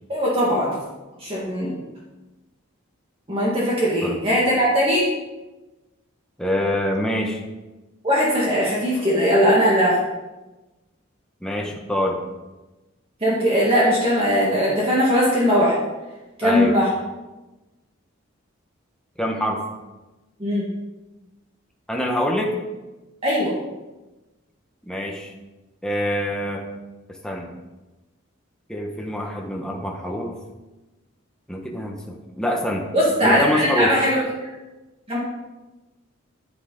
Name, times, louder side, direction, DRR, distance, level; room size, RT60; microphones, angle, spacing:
voice 1, 0.1-0.8 1.2-1.7 3.3-5.0 8.0-10.0 13.2-15.7 16.4-16.9 20.4-20.7 23.2-23.5 32.9-34.2 35.1-35.2, equal, 25° right, -6 dB, 2.0 m, -19 dB
voice 2, 6.4-7.4 11.4-12.2 16.4-16.7 19.2-19.6 21.9-22.6 24.9-25.3 25.8-26.7 27.2-27.5 28.7-30.4 31.5-32.9 33.2-34.0, left 1 dB, 5° left, 0 dB, 1.3 m, -25 dB
10.5 x 9.9 x 3.9 m, 1.1 s
head